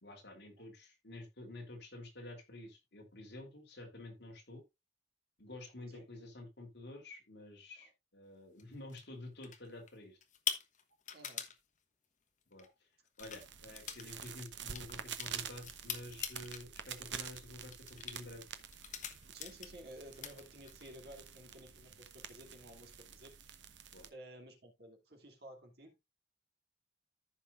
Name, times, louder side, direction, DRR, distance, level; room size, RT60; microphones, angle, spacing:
voice 1, 0.0-4.6 5.4-10.2 12.5-12.9 13.2-18.4 23.9-24.1, left 2 dB, 65° left, 3.3 m, -50 dB
sound 1, 8.6-9.0 9.4-9.9 10.2-11.5 12.5-12.7 13.1-13.4 13.7-14.1 14.3-16.6 17.0-17.3 17.7-18.2 18.7-19.9 20.1-20.9, left 8 dB, 40° left, 1.2 m, -42 dB
voice 2, 11.1-11.5 12.6-12.7 19.3-23.5 24.1-26.0, right 1 dB, 55° right, 2.6 m, -54 dB
sound 2, 13.2-24.1, right 8 dB, 75° right, 1.0 m, -48 dB
14.5 x 5.6 x 2.5 m
head